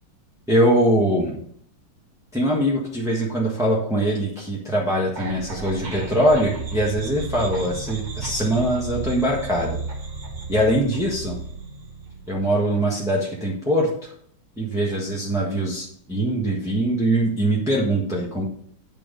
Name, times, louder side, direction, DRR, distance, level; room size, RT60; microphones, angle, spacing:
voice 1, 0.5-1.4 2.3-9.8 10.5-11.4 12.3-14.1 14.6-18.4, right 1 dB, ahead, -4 dB, 1.0 m, -22 dB
sound 1, 5.2-12.3, right 4 dB, 50° right, 0.5 m, -34 dB
9.1 x 4.5 x 5.2 m, 0.62 s
omnidirectional pair, 2.3 m